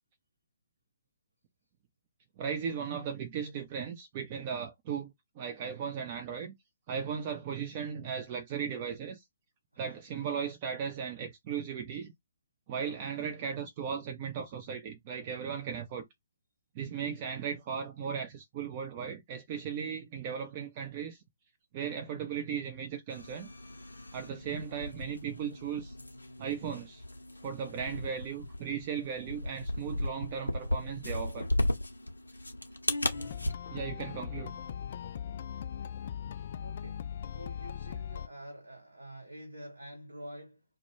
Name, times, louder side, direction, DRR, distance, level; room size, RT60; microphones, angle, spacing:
voice 1, 2.4-6.5 6.9-9.2 9.8-12.1 12.7-16.1 16.7-21.2 21.7-23.5 24.1-26.0 26.4-27.0 27.4-31.5 33.7-34.5, right 7 dB, 35° right, 0.5 m, -37 dB
sound 1, 23.1-33.5, left 1 dB, 80° left, 0.6 m, -36 dB
sound 2, 33.1-38.3, left 9 dB, 45° left, 0.3 m, -40 dB
voice 2, 36.6-37.1 37.3-40.8, right 1 dB, 80° right, 0.9 m, -47 dB
2.2 x 2.1 x 3.0 m
figure-of-eight pair, 130°, 0 cm